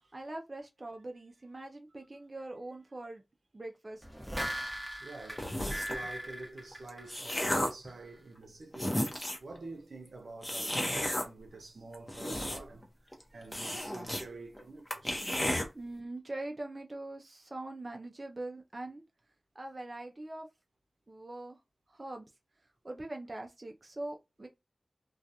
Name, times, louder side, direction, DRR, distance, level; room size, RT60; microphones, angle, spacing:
voice 1, 0.1-3.2 3.5-4.0 13.3-13.5 15.7-19.0 19.6-20.5 21.1-21.6 21.9-22.3 22.8-24.5, right 2 dB, 45° right, 0.4 m, -42 dB
sound 1, 4.0-7.5 7.9-8.0, equal, 5° right, 0.8 m, -39 dB
voice 2, 4.3-9.0 9.4-15.3, right 2 dB, 85° right, 0.6 m, -48 dB
sound 2, 5.4-6.0 6.7-7.9 8.4-8.5 8.7-9.5 10.4-11.3 11.9-12.8 13.1-13.2 13.5-14.3 14.6-14.7 14.9-15.7, left 1 dB, 25° left, 0.8 m, -33 dB
2.3 x 2.3 x 2.7 m
cardioid pair, 45°, 0 cm